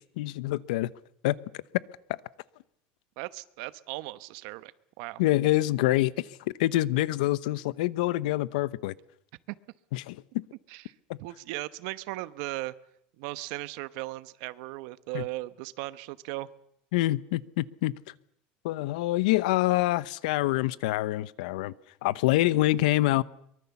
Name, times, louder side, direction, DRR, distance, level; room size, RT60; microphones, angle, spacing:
voice 1, 0.2-0.9 1.2-1.4 5.2-6.3 6.6-8.9 9.9-10.2 11.1-11.2 15.1-15.2 16.9-17.9 18.6-21.7 22.0-23.2, left 17 dB, 85° left, 18 dB, 0.9 m, -26 dB
voice 2, 3.2-4.7 5.0-5.2 9.5-9.6 10.7-10.9 11.2-12.7 13.2-16.5, right 19 dB, 60° right, 15 dB, 1.0 m, -37 dB
23.5 x 22.5 x 7.1 m, 0.73 s
cardioid pair, 170°, 4 cm